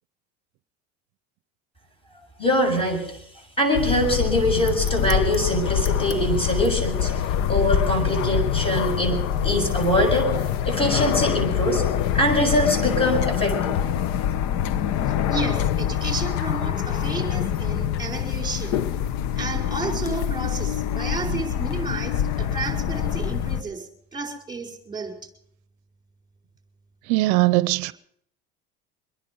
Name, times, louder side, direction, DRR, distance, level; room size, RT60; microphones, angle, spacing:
voice 1, 2.4-3.1 3.6-7.2 7.5-10.3 10.6-11.8 12.1-13.8, equal, 15° left, 7.4 m, -23 dB
sound 1, 3.7-23.6, left 9 dB, 60° left, 1.0 m, -25 dB
voice 2, 15.3-18.8 19.4-25.1, right 4 dB, 15° right, 4.9 m, -32 dB
voice 3, 27.1-27.9, right 20 dB, 70° right, 0.6 m, -21 dB
24.5 x 10.5 x 5.3 m
supercardioid pair, 100°, 31 cm